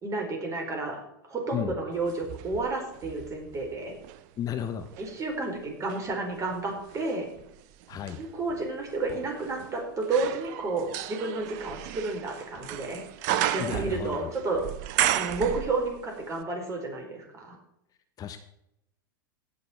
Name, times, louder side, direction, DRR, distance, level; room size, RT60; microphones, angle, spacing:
voice 1, 0.0-3.9 5.0-7.3 8.2-13.0 13.5-14.6 15.1-17.6, right 3 dB, 25° right, 2 dB, 4.7 m, -31 dB
sound 1, 2.0-4.2 4.8-16.1 16.4-16.5, right 12 dB, 55° right, 0.8 m, -34 dB
voice 2, 4.4-4.9 7.9-8.2 13.6-14.3 18.2-18.4, left 9 dB, 30° left, 8 dB, 1.1 m, -33 dB
17.0 x 6.6 x 4.6 m, 0.80 s
hypercardioid pair, 90°, 12 cm